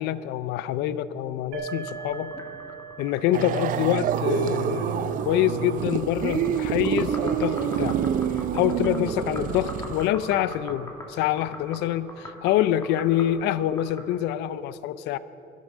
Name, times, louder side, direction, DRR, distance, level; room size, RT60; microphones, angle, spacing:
voice 1, 0.0-2.3 3.0-8.0 8.5-15.2, left 12 dB, 90° left, 16 dB, 0.5 m, -26 dB
sound 1, 1.5-9.0, right 6 dB, 90° right, 1.4 m, -43 dB
sound 2, 1.7-14.1, left 1 dB, 15° left, 2.3 m, -42 dB
sound 3, 3.3-10.1, right 9 dB, 55° right, 0.5 m, -27 dB
12.5 x 10.5 x 6.1 m, 2.9 s
cardioid pair, 110°, 17 cm